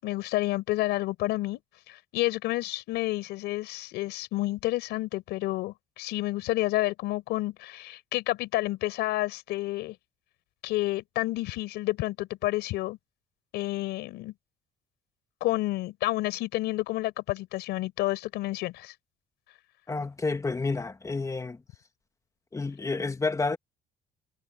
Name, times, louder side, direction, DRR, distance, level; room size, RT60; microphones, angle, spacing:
voice 1, 0.0-1.6 1.9-9.9 10.6-13.0 13.5-14.3 15.4-18.9, left 18 dB, 90° left, 5.1 m, -30 dB
voice 2, 19.9-21.6 22.5-23.6, left 3 dB, 20° left, 1.9 m, -30 dB
cardioid pair, 110°, 17 cm